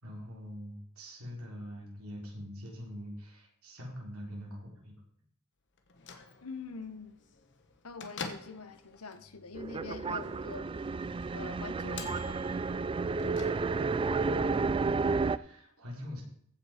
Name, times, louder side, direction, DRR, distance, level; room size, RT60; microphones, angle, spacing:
voice 1, 0.0-5.0 13.8-16.2, equal, 70° right, 4.0 m, -44 dB
Bell / Microwave oven, 5.8-14.1, left 5 dB, 55° left, 1.5 m, -49 dB
voice 2, 6.4-7.2 7.8-10.9 11.3-12.6 13.7-14.1, left 4 dB, 70° left, 1.1 m, -45 dB
sound 1, 9.5-15.4, right 4 dB, 25° right, 0.3 m, -31 dB
15.0 x 6.1 x 5.1 m
head